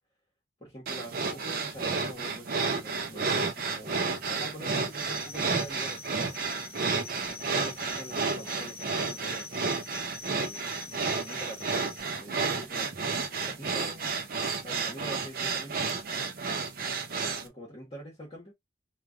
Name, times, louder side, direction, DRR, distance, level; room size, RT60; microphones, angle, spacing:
voice 1, 0.6-6.4 6.8-9.5 10.2-11.8 12.1-14.1 14.6-16.0 17.1-18.5, equal, 30° left, 1.2 m, -45 dB
sound 1, 0.9-17.5, right 4 dB, 50° right, 0.5 m, -31 dB
sound 2, 4.9-12.0, left 5 dB, 10° left, 0.7 m, -45 dB
3.2 x 2.3 x 2.4 m
head